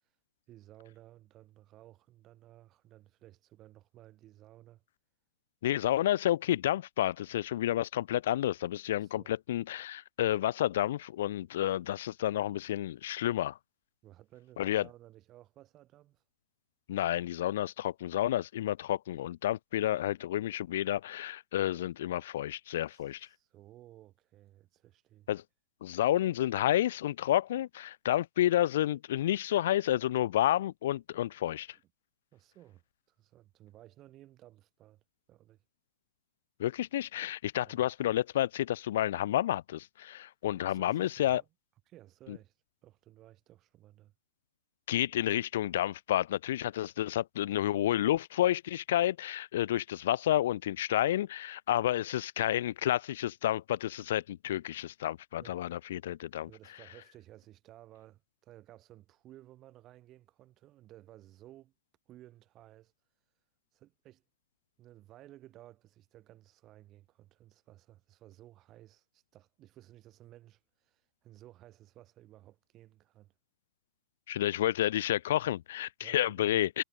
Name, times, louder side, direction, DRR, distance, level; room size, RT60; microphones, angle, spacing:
voice 1, 0.5-4.8 9.0-9.3 14.0-16.2 22.8-25.3 32.3-35.0 35.3-35.6 37.6-37.8 40.6-41.4 41.9-42.5 42.8-44.1 55.4-55.6 56.5-61.7 62.1-62.9 63.7-64.2 64.8-73.3 76.0-76.6, right 14 dB, 30° right, 5.1 m, -56 dB
voice 2, 5.6-13.6 14.6-14.9 16.9-23.3 25.3-25.4 25.8-31.8 36.6-41.4 42.3-42.4 44.9-56.5 74.3-76.8, left 13 dB, 65° left, 0.5 m, -30 dB
hypercardioid pair, 130°, 0 cm